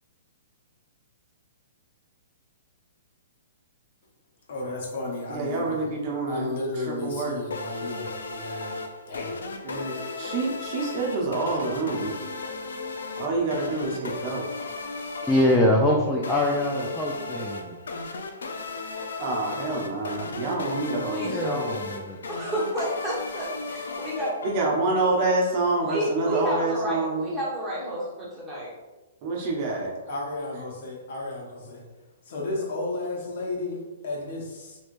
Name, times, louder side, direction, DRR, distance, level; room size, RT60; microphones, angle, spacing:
voice 1, 4.5-5.9 6.3-9.4 30.1-31.8 32.3-34.8, left 2 dB, 60° left, -1 dB, 0.9 m, -33 dB
voice 2, 5.3-6.5 6.9-7.4 9.6-12.1 13.2-14.4 19.2-21.3 24.4-27.3 29.2-29.9, right 3 dB, 45° right, -2 dB, 0.8 m, -27 dB
sound 1, 7.5-24.9, left 3 dB, 90° left, 0.4 m, -36 dB
voice 3, 15.2-17.8 21.2-22.2, left 1 dB, 5° left, -4 dB, 0.4 m, -24 dB
voice 4, 21.1-21.7 22.3-24.3 25.8-28.7, equal, 15° right, -7 dB, 1.1 m, -30 dB
3.1 x 3.1 x 2.5 m, 1.1 s
hypercardioid pair, 150°, 0 cm